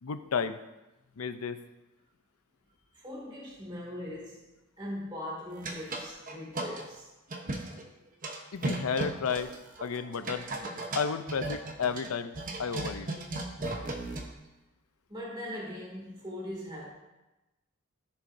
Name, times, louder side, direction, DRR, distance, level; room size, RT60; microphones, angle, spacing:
voice 1, 0.0-0.6 1.2-1.6 8.5-9.5 9.8-10.5 10.9-13.1, left 6 dB, 85° left, 11 dB, 0.6 m, -32 dB
voice 2, 2.9-4.4 4.8-7.1 15.1-16.9, left 1 dB, 20° right, -5 dB, 2.4 m, -40 dB
sound 1, 5.6-6.8 7.3-7.8 8.2-14.3, right 2 dB, 40° right, 1.0 m, -36 dB
14.0 x 6.8 x 2.7 m, 1.0 s
head